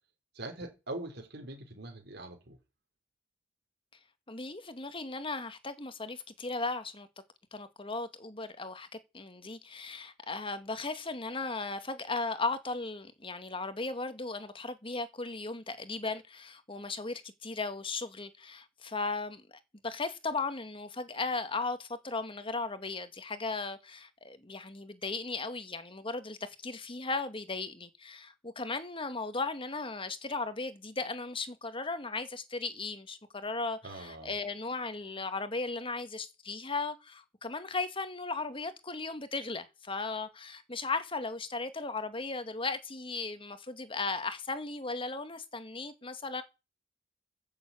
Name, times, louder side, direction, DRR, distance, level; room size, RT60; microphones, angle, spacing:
voice 1, 0.3-2.6 33.8-34.3, right 2 dB, 60° right, 3.9 m, -42 dB
voice 2, 4.3-7.1 7.5-8.9 9.1-46.4, left 3 dB, 30° left, 2.0 m, -36 dB
14.0 x 7.5 x 8.5 m
head